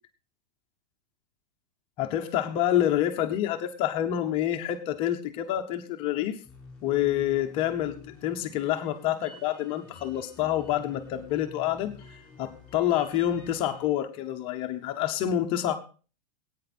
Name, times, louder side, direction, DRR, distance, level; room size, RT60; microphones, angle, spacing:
voice 1, 2.0-6.4 6.8-15.8, left 11 dB, 25° left, 5 dB, 0.9 m, -28 dB
sound 1, 6.4-13.8, left 3 dB, 5° left, 4.8 m, -49 dB
18.0 x 9.2 x 4.2 m, 0.37 s
supercardioid pair, 175°, 21 cm